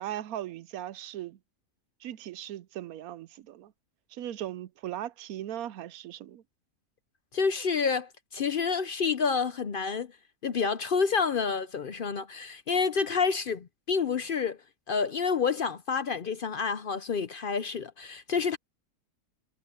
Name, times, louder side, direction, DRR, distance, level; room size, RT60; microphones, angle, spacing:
voice 1, 0.0-1.4 2.0-3.7 4.1-6.4, right 12 dB, 80° right, 1.1 m, -38 dB
voice 2, 7.3-10.2 10.4-14.6 14.9-18.6, left 5 dB, 55° left, 0.6 m, -28 dB
omnidirectional pair, 1.5 m